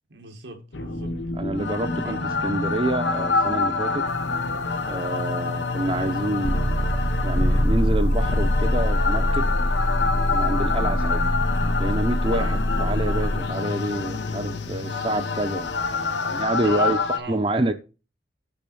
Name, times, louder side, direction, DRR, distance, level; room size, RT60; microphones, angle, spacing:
voice 1, 0.1-1.1 2.0-2.3 12.3-12.6 16.6-17.5, right 2 dB, 85° right, 1.8 m, -39 dB
sound 1, 0.7-17.2, left 2 dB, 90° left, 1.1 m, -24 dB
voice 2, 1.3-4.1 4.9-9.5 10.3-11.3 11.8-15.7 16.0-17.0 17.3-17.7, right 1 dB, 30° right, 0.7 m, -27 dB
sound 2, 4.1-16.4, left 3 dB, 75° left, 0.7 m, -34 dB
7.1 x 6.2 x 6.1 m
head